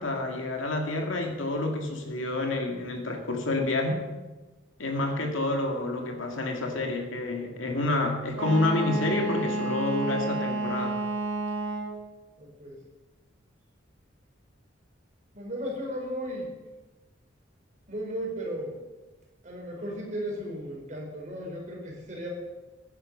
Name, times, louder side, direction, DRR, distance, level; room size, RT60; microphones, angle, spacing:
voice 1, 0.0-4.0 4.8-11.0, left 2 dB, 90° left, 2 dB, 2.4 m, -28 dB
Wind instrument woodwind instrument, 8.3-12.1, right 2 dB, 80° right, 1.7 m, -30 dB
voice 2, 12.4-12.8 15.3-16.5 17.9-18.8 19.4-22.3, equal, 40° right, -1 dB, 4.6 m, -35 dB
15.0 x 10.0 x 5.5 m, 1.2 s
head